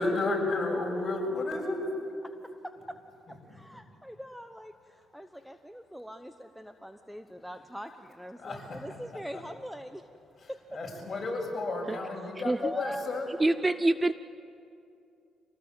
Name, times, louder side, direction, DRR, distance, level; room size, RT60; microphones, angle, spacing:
voice 1, 0.0-2.1 3.3-3.8 8.4-8.8 9.1-9.4 10.4-13.4, left 2 dB, 35° left, -1 dB, 6.9 m, -32 dB
voice 2, 2.6-3.0 3.3-10.1 10.5-10.6 12.6-13.0, equal, ahead, 8 dB, 0.9 m, -43 dB
voice 3, 13.4-14.1, right 2 dB, 20° right, 14 dB, 0.5 m, -24 dB
26.0 x 19.0 x 8.0 m, 2.5 s
cardioid pair, 90°, 0 cm